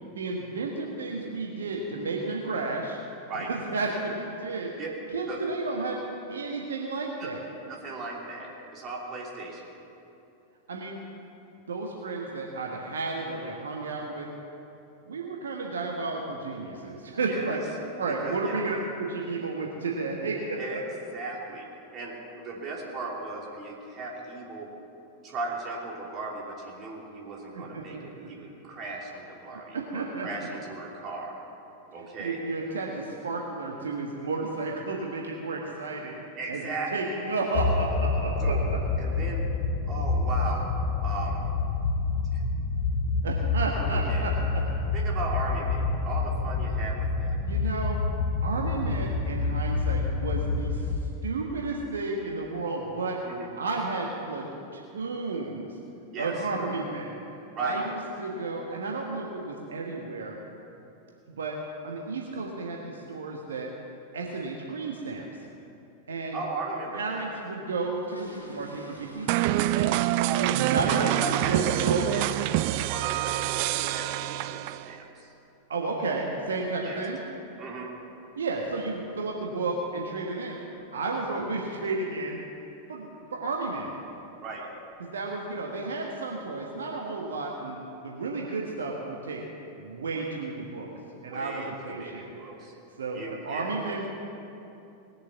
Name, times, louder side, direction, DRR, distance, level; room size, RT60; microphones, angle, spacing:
voice 1, 0.1-3.0 3.5-4.7 5.1-6.0 6.3-7.5 10.7-11.0 11.7-14.3 15.1-17.6 18.0-20.8 27.5-28.1 29.7-30.3 32.0-36.2 36.5-38.5 43.2-44.6 47.4-48.0 48.4-50.9 51.2-53.2 53.6-54.5 54.7-55.7 56.2-57.1 57.6-60.3 61.3-61.6 61.8-63.7 64.1-65.2 66.1-66.4 66.9-69.9 70.3-72.0 75.7-77.2 78.4-80.6 80.9-82.4 82.9-83.9 85.0-87.8 88.0-89.4 89.8-90.9 91.2-92.3 93.0-94.1, right 3 dB, 65° right, 0 dB, 1.3 m, -32 dB
voice 2, 7.7-9.6 17.3-17.6 18.1-18.6 20.6-20.9 21.1-21.7 21.9-24.7 25.2-28.4 28.6-31.4 31.9-32.4 36.4-37.2 38.4-38.6 39.0-39.4 39.9-40.7 41.0-41.4 42.3-42.4 43.7-44.3 44.9-47.4 53.2-53.5 56.1-56.3 57.5-57.8 66.3-67.3 69.3-69.6 70.2-72.3 72.9-75.3 76.8-77.0 77.6-77.9 84.4-84.7 91.3-92.7 93.1-94.1, right 3 dB, 30° right, -2 dB, 3.0 m, -37 dB
sound 1, 37.5-51.0, left 3 dB, 40° left, 0.9 m, -27 dB
sound 2, 67.6-73.5 73.8-74.0 74.4-74.5 74.8-75.0 75.4-75.6 75.9-76.0 76.5-76.6 76.9-77.1 77.6-77.9 78.2-78.3 78.7-78.9 79.2-79.3 79.7-79.8 80.4-80.7 81.1-81.4 81.7-81.8 82.3-82.4 83.1-83.3 83.7-84.2 84.6-84.7, right 1 dB, 85° right, 2.0 m, -50 dB
sound 3, 69.3-74.9, right 16 dB, 45° right, 0.3 m, -26 dB
19.5 x 7.6 x 7.0 m, 2.9 s
figure-of-eight pair, 90°, 0 cm